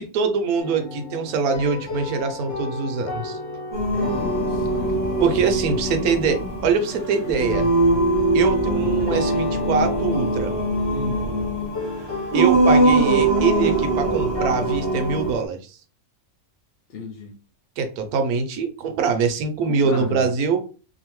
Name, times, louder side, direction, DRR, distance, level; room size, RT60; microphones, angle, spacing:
voice 1, 0.0-3.4 5.2-7.7 8.3-10.5 12.3-15.8 17.8-20.6, right 5 dB, 75° right, 1.0 m, -23 dB
sound 1, 0.6-15.5, left 4 dB, 55° left, 1.1 m, -33 dB
Singing, 3.7-15.4, right 2 dB, 30° right, 0.4 m, -22 dB
voice 2, 4.0-5.2 10.9-11.3 16.9-17.4 19.7-20.2, left 3 dB, 80° left, 0.5 m, -33 dB
2.7 x 2.5 x 3.0 m
omnidirectional pair, 1.6 m